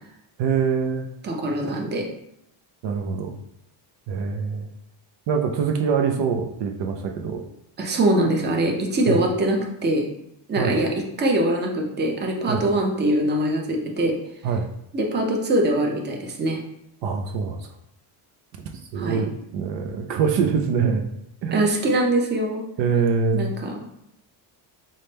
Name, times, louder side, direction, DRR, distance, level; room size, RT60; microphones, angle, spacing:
voice 1, 0.4-1.1 2.8-3.3 4.1-4.7 5.3-7.4 9.1-9.2 10.6-10.8 12.5-12.6 14.4-14.7 17.0-17.7 18.9-21.1 21.4-21.7 22.8-23.5, right 6 dB, 60° right, 4 dB, 0.6 m, -24 dB
voice 2, 1.2-2.0 7.8-10.1 10.5-10.9 11.2-14.1 14.9-16.6 18.9-19.2 21.5-22.7 23.3-23.9, right 1 dB, 20° right, 1 dB, 0.6 m, -23 dB
5.5 x 2.1 x 3.3 m, 0.77 s
cardioid pair, 135°, 49 cm